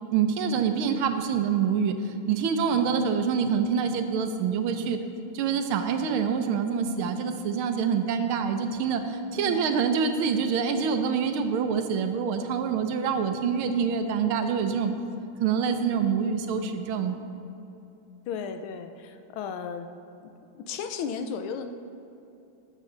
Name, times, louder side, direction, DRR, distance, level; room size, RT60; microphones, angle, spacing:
voice 1, 0.1-5.0 5.3-14.9 15.4-17.2, right 6 dB, 90° right, 7 dB, 1.6 m, -26 dB
voice 2, 9.3-9.6 18.3-19.9 20.5-21.7, left 6 dB, 85° left, 8 dB, 1.5 m, -34 dB
12.5 x 7.6 x 3.8 m, 2.9 s
omnidirectional pair, 2.3 m